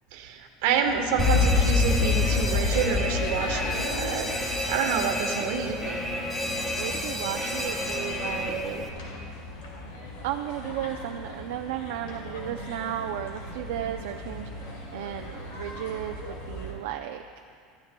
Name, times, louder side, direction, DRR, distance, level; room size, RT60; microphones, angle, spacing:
voice 1, 0.1-4.3 4.7-6.0, right 7 dB, 70° right, 3 dB, 1.1 m, -28 dB
sound 1, 0.8-16.7, left 1 dB, 85° left, 2.4 m, -39 dB
Alarm, 1.2-8.9, left 3 dB, 5° left, 0.7 m, -27 dB
voice 2, 6.5-8.9 10.2-17.2, right 11 dB, 85° right, 4 dB, 0.4 m, -34 dB
14.5 x 13.0 x 2.2 m, 2.2 s
cardioid pair, 175°, 0 cm